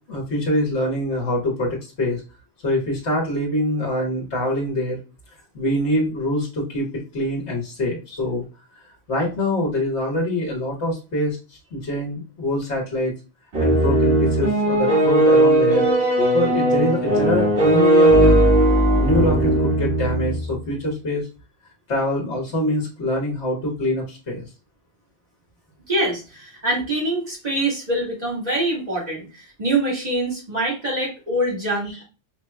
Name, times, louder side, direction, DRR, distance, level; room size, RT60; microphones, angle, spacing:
voice 1, 0.1-2.2 2.6-5.0 5.5-8.4 9.1-11.4 11.7-13.1 13.6-15.9 16.3-18.4 19.0-21.3 21.9-24.4, left 1 dB, 80° left, -3 dB, 1.5 m, -24 dB
sound 1, 13.5-20.5, right 1 dB, 70° right, 2.0 m, -17 dB
voice 2, 25.9-32.0, right 1 dB, 35° right, -5 dB, 2.2 m, -24 dB
5.2 x 2.9 x 2.2 m, 0.32 s
omnidirectional pair, 1.1 m